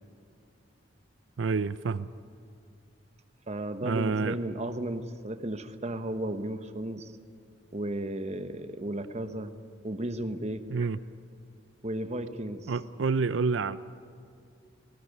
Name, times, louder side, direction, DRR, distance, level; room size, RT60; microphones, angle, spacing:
voice 1, 1.4-2.1 3.8-4.4 10.7-11.0 12.7-13.8, right 4 dB, 80° right, 14 dB, 0.5 m, -28 dB
voice 2, 3.5-7.1 7.7-9.5 9.8-10.6 11.8-12.7, right 1 dB, 35° right, 8 dB, 1.2 m, -34 dB
18.5 x 17.5 x 9.5 m, 2.5 s
head